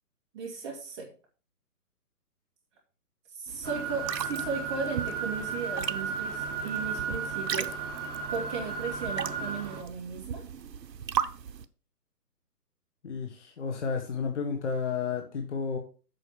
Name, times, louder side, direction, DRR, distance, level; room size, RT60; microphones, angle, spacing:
voice 1, 0.3-1.1 3.3-8.1 8.3-10.4, right 5 dB, 15° right, -1 dB, 1.9 m, -36 dB
sound 1, 3.5-11.6, right 8 dB, 85° right, 0.9 m, -37 dB
sound 2, 3.6-9.8, right 5 dB, 45° right, 2.1 m, -34 dB
voice 2, 13.0-15.8, left 5 dB, 45° left, 3 dB, 1.5 m, -32 dB
7.9 x 5.0 x 6.4 m, 0.37 s
hypercardioid pair, 165°, 48 cm